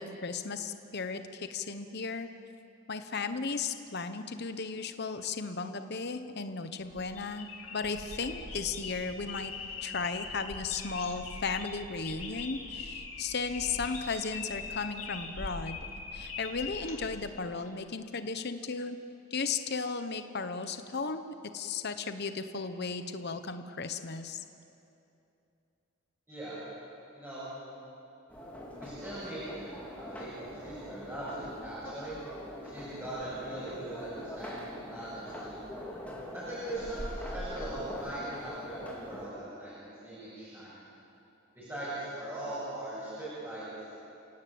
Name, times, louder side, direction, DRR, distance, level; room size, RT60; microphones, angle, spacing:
voice 1, 0.0-2.3 2.9-9.5 9.8-15.8 16.1-19.0 19.3-24.4, left 4 dB, 50° left, 9 dB, 1.0 m, -35 dB
sound 1, 6.8-17.7, left 4 dB, 75° left, 3.4 m, -42 dB
voice 2, 26.3-26.6 27.1-27.5 28.8-32.2 32.6-35.6 36.3-40.8 41.5-43.7, right 1 dB, 10° right, -10 dB, 7.6 m, -40 dB
sound 2, 28.3-39.3, left 1 dB, 5° left, 3.6 m, -43 dB
29.0 x 17.5 x 8.6 m, 2.8 s
head